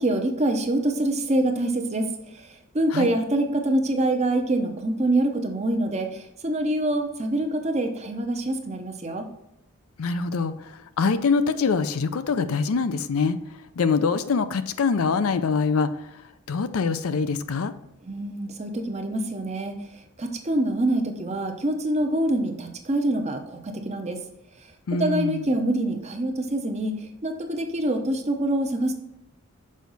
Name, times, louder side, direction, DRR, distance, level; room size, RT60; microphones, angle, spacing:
voice 1, 0.0-2.1 2.7-9.3 18.0-19.8 20.2-24.2 25.0-28.9, right 1 dB, 30° right, 5 dB, 0.7 m, -25 dB
voice 2, 10.0-10.5 11.0-13.4 13.8-15.9 16.5-17.7 24.9-25.5, left 5 dB, 75° left, 11 dB, 0.5 m, -24 dB
6.3 x 4.7 x 4.0 m, 0.84 s
head